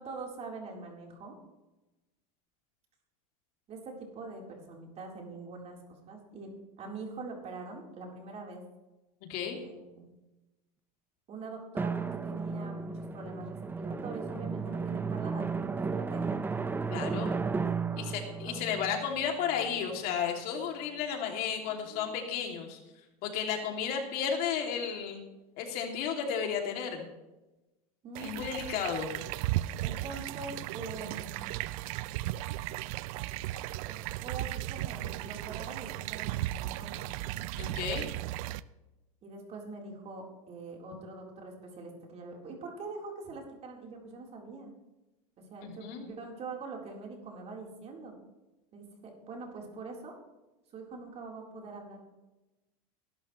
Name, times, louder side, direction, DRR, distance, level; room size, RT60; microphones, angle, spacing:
voice 1, 0.0-1.4 3.7-5.8 6.1-6.5 6.8-8.6 9.5-10.1 11.3-16.4 17.9-18.8 21.7-22.2 23.6-23.7 28.0-28.3 29.8-31.5 33.8-37.1 39.2-44.7 45.4-48.1 48.7-50.1 50.7-52.0, right 3 dB, 35° right, 0 dB, 4.0 m, -44 dB
Drum, 11.8-20.0, right 4 dB, 10° right, 0.5 m, -34 dB
voice 2, 16.9-17.3 18.0-22.8 23.2-25.2 25.6-27.1 28.2-29.1 37.6-38.1 45.6-46.1, left 7 dB, 55° left, 2 dB, 2.8 m, -33 dB
sound 1, 28.2-38.6, right 16 dB, 65° right, 0.5 m, -36 dB
20.5 x 12.0 x 3.2 m, 1.0 s
supercardioid pair, 120°, 19 cm